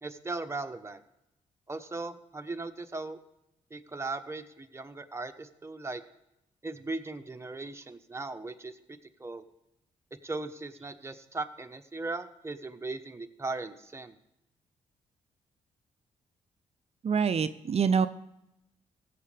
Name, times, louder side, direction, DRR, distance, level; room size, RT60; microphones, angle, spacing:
voice 1, 0.0-1.0 1.7-3.2 3.7-6.0 6.6-8.8 9.2-9.4 10.2-14.2, right 3 dB, 20° right, 7 dB, 1.1 m, -38 dB
voice 2, 17.0-18.1, right 6 dB, 45° right, 12 dB, 0.5 m, -25 dB
16.5 x 7.5 x 3.4 m, 0.85 s
supercardioid pair, 50°, 15 cm